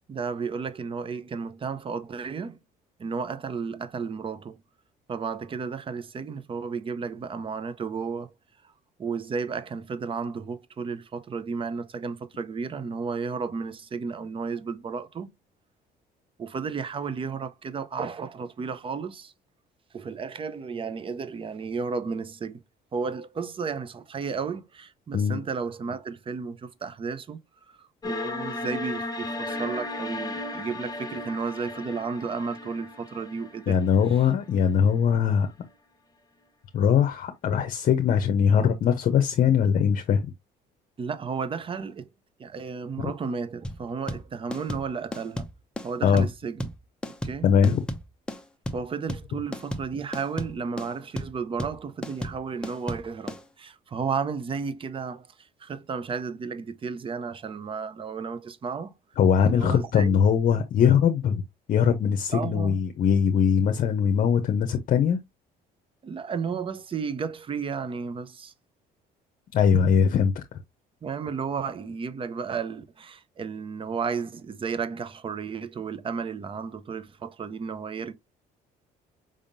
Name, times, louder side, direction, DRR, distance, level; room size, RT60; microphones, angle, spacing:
voice 1, 0.1-2.6 3.0-4.6 5.1-8.3 9.0-15.3 16.4-19.3 19.9-22.6 22.9-27.4 27.7-33.8 41.0-42.1 42.4-45.5 45.8-46.7 47.2-47.5 48.7-55.3 55.6-58.9 59.4-60.2 62.3-62.8 66.0-68.5 71.0-78.1, right 5 dB, 30° right, 0.7 m, -33 dB
sound 1, 28.0-35.0, left 2 dB, 25° left, 1.1 m, -35 dB
voice 2, 33.7-35.5 36.7-40.3 43.0-43.1 46.0-46.3 47.4-47.8 59.2-61.4 61.7-65.2 69.5-70.4, left 7 dB, 55° left, 0.7 m, -21 dB
sound 2, 43.6-53.4, equal, 5° left, 0.7 m, -34 dB
5.1 x 3.6 x 2.5 m
cardioid pair, 110°, 17 cm